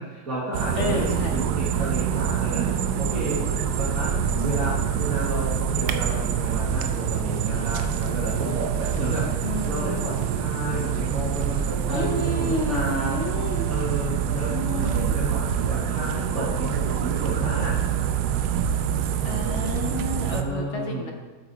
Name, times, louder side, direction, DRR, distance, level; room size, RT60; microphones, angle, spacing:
voice 1, 0.0-3.4 3.7-9.4 9.7-13.2 13.7-17.8 20.2-21.1, right 2 dB, 50° right, -7 dB, 1.9 m, -32 dB
sound 1, 0.5-20.4, right 8 dB, 75° right, 1.2 m, -26 dB
voice 2, 0.7-1.4 4.3-4.8 9.4-10.0 11.9-13.7 14.5-15.2 19.2-21.1, left 2 dB, 55° left, 2 dB, 0.9 m, -31 dB
8.6 x 6.0 x 4.0 m, 1.3 s
omnidirectional pair, 2.1 m